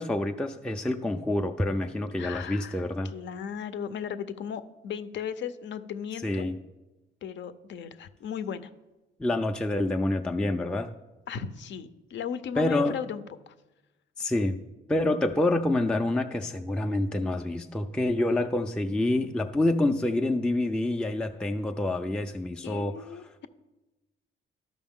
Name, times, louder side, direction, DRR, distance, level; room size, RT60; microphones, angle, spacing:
voice 1, 0.0-3.1 6.2-6.6 9.2-10.9 12.6-13.0 14.2-14.6 14.9-23.2, left 1 dB, 5° left, 4 dB, 0.4 m, -27 dB
voice 2, 2.2-2.8 3.1-6.5 7.2-8.7 11.3-13.5 18.4-18.5 22.6-23.5, left 7 dB, 65° left, 12 dB, 0.6 m, -36 dB
12.5 x 5.2 x 3.6 m, 1.1 s
cardioid pair, 90°, 20 cm